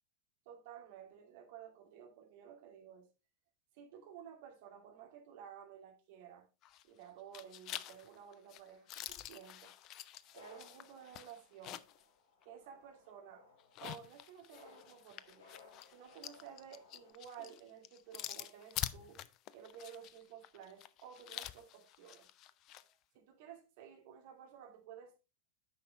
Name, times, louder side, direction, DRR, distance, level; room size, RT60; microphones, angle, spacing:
voice 1, 0.5-3.1 3.7-6.5 6.8-9.7 10.3-11.8 12.4-13.5 13.8-15.5 15.9-19.2 19.5-22.3 22.8-22.9 23.1-25.1, right 8 dB, 50° right, 2.3 m, -54 dB
sound 1, 6.6-7.0 7.3-12.0 12.4-12.5 13.6-22.9, left 13 dB, 35° left, 0.5 m, -47 dB
sound 2, 10.2-17.1, left 4 dB, 55° left, 4.2 m, -63 dB
9.6 x 5.7 x 3.4 m
figure-of-eight pair, 90°, 0 cm